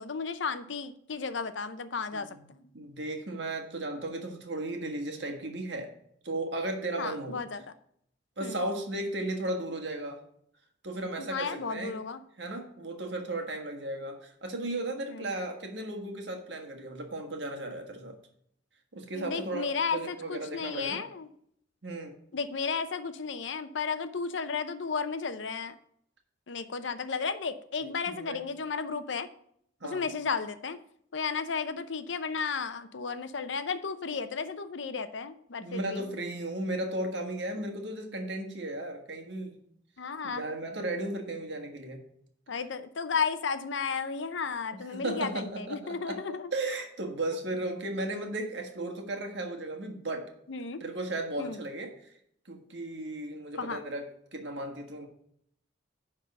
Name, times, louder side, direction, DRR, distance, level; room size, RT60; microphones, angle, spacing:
voice 1, 0.0-2.7 7.0-7.6 8.4-8.6 11.2-12.2 15.1-15.4 19.1-21.3 22.3-25.7 26.5-29.3 29.8-30.8 31.1-36.1 40.0-40.5 42.5-46.5 50.5-50.8 51.4-51.6 53.6-53.8, left 5 dB, 75° left, 11 dB, 0.7 m, -34 dB
voice 2, 2.1-2.5 2.7-5.9 6.2-7.4 8.4-10.2 10.8-12.0 12.4-18.1 18.9-21.0 21.8-22.1 28.1-28.4 29.8-30.1 35.6-39.6 40.2-42.0 44.9-46.2 46.5-50.3 50.8-52.1 52.4-54.0 54.3-55.1, right 1 dB, 65° right, 3 dB, 1.6 m, -35 dB
10.0 x 3.7 x 6.6 m, 0.68 s
head